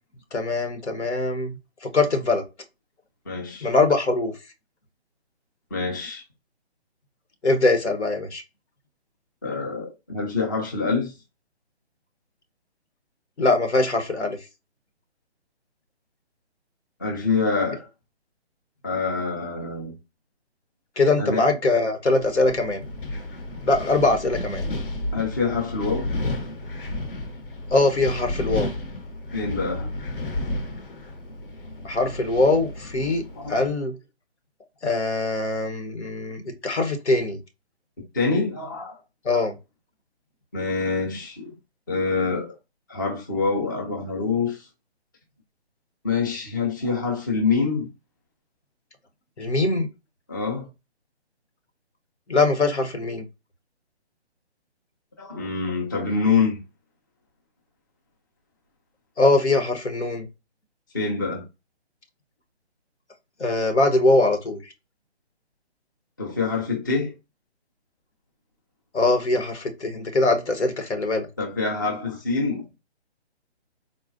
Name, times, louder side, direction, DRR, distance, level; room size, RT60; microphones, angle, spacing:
voice 1, 0.3-2.4 3.6-4.3 7.4-8.4 13.4-14.4 21.0-22.8 23.6-24.6 27.7-28.7 31.8-33.9 34.8-37.4 39.2-39.5 49.4-49.9 52.3-53.2 59.2-60.3 63.4-64.6 68.9-71.3, left 2 dB, 90° left, 1.0 m, -22 dB
voice 2, 3.3-3.7 5.7-6.2 9.4-11.1 17.0-17.9 18.8-19.9 21.2-21.5 25.1-26.1 29.3-29.9 33.4-33.5 38.1-38.9 40.5-41.4 41.9-42.5 42.9-44.7 46.0-47.9 50.3-50.6 55.2-56.6 60.9-61.4 66.2-67.1 71.4-72.6, left 4 dB, 20° left, 0.4 m, -25 dB
Wind, 22.2-33.7, left 2 dB, 55° left, 0.8 m, -32 dB
3.9 x 2.2 x 2.5 m
figure-of-eight pair, 150°, 33 cm